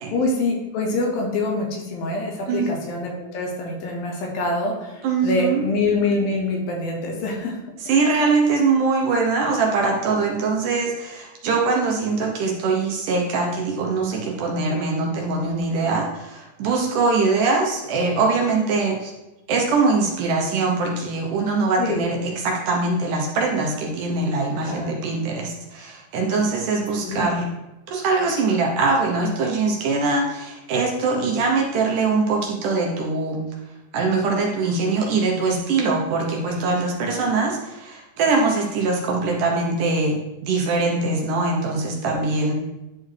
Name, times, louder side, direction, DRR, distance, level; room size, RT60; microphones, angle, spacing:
voice 1, 0.1-7.6 15.4-15.5 21.8-22.1 24.6-25.0 27.0-27.3 36.4-36.6 42.0-42.1, left 2 dB, 75° left, 0 dB, 3.0 m, -25 dB
voice 2, 5.0-5.6 7.8-19.1 19.5-27.5 27.9-33.4 33.9-42.5, right 3 dB, 70° right, 0 dB, 2.1 m, -22 dB
10.5 x 4.3 x 3.2 m, 0.99 s
omnidirectional pair, 4.4 m